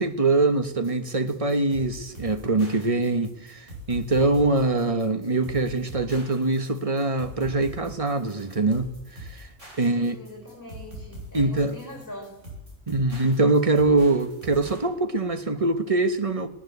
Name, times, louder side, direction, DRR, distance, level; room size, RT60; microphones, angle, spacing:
voice 1, 0.0-9.5 9.8-10.1 11.3-11.8 12.9-16.5, right 2 dB, 25° right, 1.4 m, -23 dB
sound 1, 0.8-14.8, equal, 60° right, 8.5 m, -42 dB
voice 2, 9.7-12.3, left 1 dB, 15° left, 5.6 m, -42 dB
19.5 x 19.5 x 8.2 m
omnidirectional pair, 1.4 m